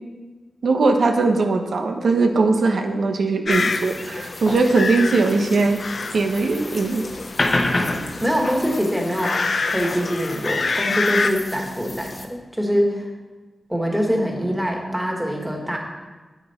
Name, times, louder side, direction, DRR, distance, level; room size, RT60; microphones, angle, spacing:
voice 1, 0.6-5.8 6.1-7.1, right 3 dB, 90° right, 5 dB, 0.9 m, -20 dB
sound 1, 3.5-11.3, left 4 dB, 65° left, 0.6 m, -27 dB
sound 2, 3.5-12.2, left 2 dB, 40° left, 0.9 m, -30 dB
voice 2, 8.2-9.3 9.7-13.0 13.7-15.8, equal, 5° right, 0 dB, 1.7 m, -23 dB
9.2 x 9.1 x 4.3 m, 1.3 s
wide cardioid pair, 130°, 0 cm